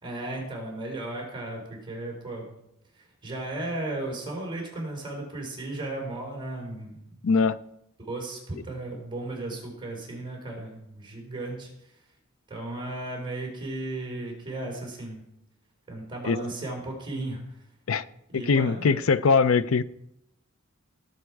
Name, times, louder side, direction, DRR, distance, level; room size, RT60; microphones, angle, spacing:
voice 1, 0.0-2.6 3.2-7.2 8.0-11.7 12.5-15.2 15.9-17.4 18.3-19.0, right 2 dB, 25° right, 4.5 m, -35 dB
voice 2, 7.2-7.6 16.2-16.4 17.9-18.0 18.3-19.8, left 5 dB, 75° left, 0.5 m, -22 dB
17.5 x 8.0 x 4.7 m
head